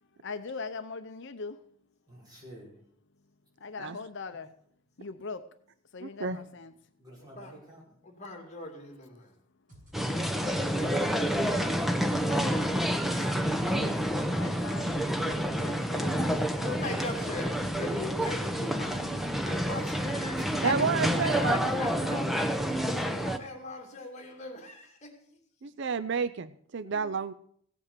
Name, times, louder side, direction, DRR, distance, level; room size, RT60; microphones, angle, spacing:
voice 1, 0.2-1.6 3.6-4.5 5.0-5.4 5.9-6.7 10.4-11.3 12.1-12.8 14.3-16.9 20.9-22.1, left 4 dB, 55° left, 0.7 m, -42 dB
voice 2, 2.1-2.7 7.0-7.8 13.1-13.4 19.8-19.9 20.3-20.7, equal, 20° right, 5.8 m, -46 dB
voice 3, 6.0-6.4 20.6-21.6 22.0-22.2 25.6-27.3, right 5 dB, 55° right, 0.5 m, -31 dB
voice 4, 7.2-7.6 8.0-9.3 10.6-11.8 13.7-13.8 14.5-14.6 15.3-15.4 16.6-19.1 19.4-20.8 21.2-25.4 26.8-27.1, left 2 dB, 30° left, 2.6 m, -41 dB
sound 1, 9.7-20.6, equal, 40° right, 6.4 m, -52 dB
sound 2, 9.9-23.4, equal, ahead, 0.8 m, -29 dB
16.5 x 8.5 x 6.8 m
head